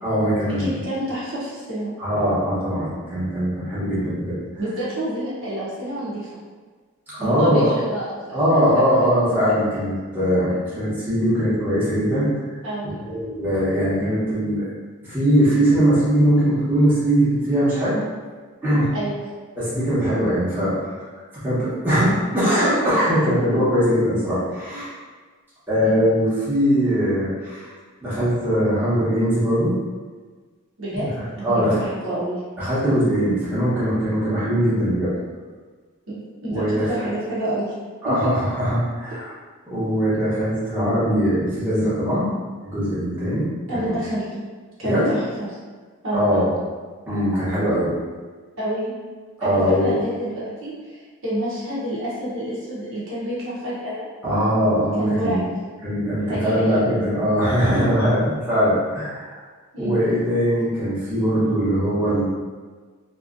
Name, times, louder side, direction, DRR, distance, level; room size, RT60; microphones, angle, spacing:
voice 1, 0.0-0.7 2.0-4.4 7.2-7.7 8.3-12.3 13.0-14.7 15.0-18.0 18.6-18.9 19.6-20.7 21.4-24.9 25.7-27.7 28.0-29.7 30.9-31.1 31.4-31.8 32.6-35.1 36.5-36.9 38.0-39.3 39.7-42.3 42.6-44.0 44.8-45.1 46.1-46.5 47.1-47.9 49.4-50.0 54.2-55.4 55.8-59.4 59.8-62.2, equal, 10° right, -12 dB, 1.0 m, -21 dB
voice 2, 0.6-1.9 4.6-6.3 7.2-8.7 12.6-13.0 18.9-19.3 25.8-26.0 30.8-31.1 31.4-32.4 36.1-37.7 38.0-38.3 43.7-44.4 44.8-45.5 46.0-46.3 48.6-48.9 49.4-54.1 55.0-55.4 56.3-56.5 59.7-60.0, right 1 dB, 65° right, -8 dB, 1.0 m, -28 dB
3.0 x 2.7 x 2.5 m, 1.4 s
head